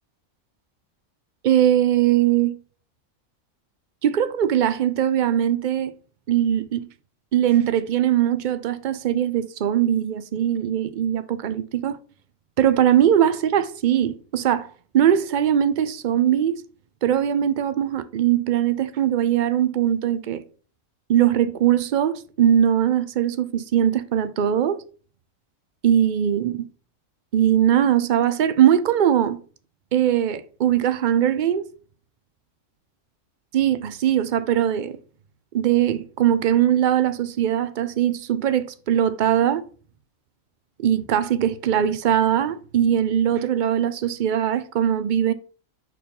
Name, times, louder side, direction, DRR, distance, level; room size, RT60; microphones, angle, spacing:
voice 1, 1.4-2.6 4.0-5.9 6.3-6.9 7.3-12.0 12.6-14.7 14.9-16.6 17.0-20.4 21.1-24.8 25.8-26.6 27.3-29.4 29.9-31.7 33.5-35.0 35.5-39.6 40.8-45.3, right 10 dB, 65° right, 0.4 m, -20 dB
6.1 x 4.7 x 5.3 m
omnidirectional pair, 1.4 m